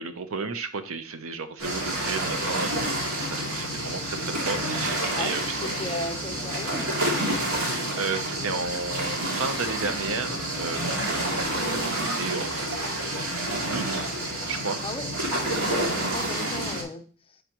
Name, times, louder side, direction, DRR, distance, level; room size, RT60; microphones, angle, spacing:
voice 1, 0.0-6.0 8.0-14.1 14.5-14.8, right 4 dB, 70° right, 0.8 m, -33 dB
sound 1, 1.6-16.8, right 1 dB, 85° right, 2.5 m, -29 dB
voice 2, 5.1-6.9 14.8-17.4, left 2 dB, 25° left, 0.7 m, -37 dB
10.5 x 4.8 x 3.0 m
head